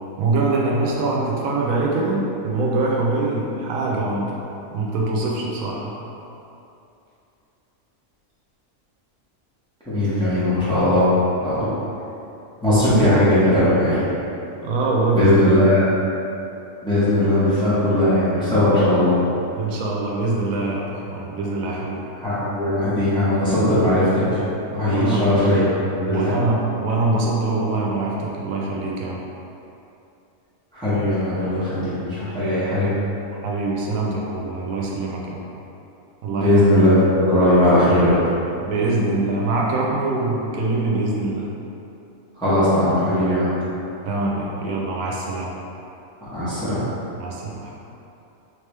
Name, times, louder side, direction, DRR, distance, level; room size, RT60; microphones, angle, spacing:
voice 1, 0.2-4.3 4.7-5.9 14.6-15.4 19.6-22.0 24.8-25.3 26.1-29.2 33.4-35.4 36.2-36.5 38.6-41.5 44.1-45.5 47.1-47.7, right 2 dB, 90° right, -3 dB, 1.0 m, -23 dB
voice 2, 9.9-11.1 11.4-11.7 12.6-14.1 15.2-15.8 16.8-19.2 22.2-24.4 24.7-26.3 30.7-32.9 36.3-38.1 42.4-43.5 46.3-46.8, left 1 dB, 5° left, -13 dB, 1.1 m, -18 dB
3.3 x 3.3 x 3.2 m, 2.8 s
omnidirectional pair, 1.4 m